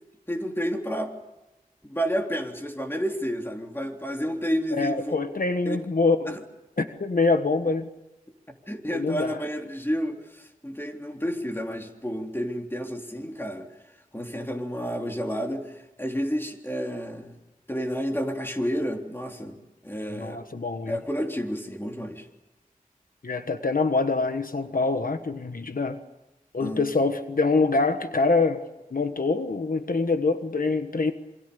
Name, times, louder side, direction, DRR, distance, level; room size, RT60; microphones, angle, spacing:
voice 1, 0.3-1.1 1.8-5.2 5.7-5.8 6.3-6.4 8.7-13.7 14.1-17.4 17.7-19.6 19.8-20.4 20.9-22.3 26.6-26.8, equal, 15° left, 3.5 m, -30 dB
voice 2, 4.7-6.4 6.8-7.9 8.9-9.4 20.1-21.0 23.2-26.0 26.5-28.6 28.9-31.1, left 3 dB, 75° left, 1.3 m, -25 dB
27.5 x 24.5 x 7.0 m
wide cardioid pair, 70°, 15 cm